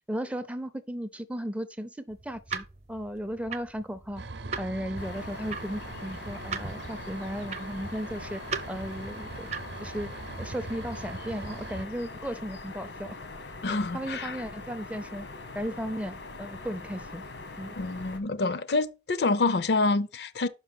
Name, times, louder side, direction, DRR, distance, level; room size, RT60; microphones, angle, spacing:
voice 1, 0.1-4.2 4.6-8.4 8.7-9.5 9.8-10.1 10.4-13.2 13.7-15.3 15.5-17.2 17.6-17.8, equal, 5° right, 0.4 m, -35 dB
sound 1, 2.1-9.9, right 5 dB, 40° right, 0.7 m, -40 dB
sound 2, 4.2-11.9, right 3 dB, 75° right, 0.7 m, -42 dB
sound 3, 5.0-18.2, left 3 dB, 90° left, 1.2 m, -42 dB
voice 2, 13.6-14.4 17.8-20.5, left 3 dB, 70° left, 0.5 m, -27 dB
5.5 x 5.4 x 5.9 m
head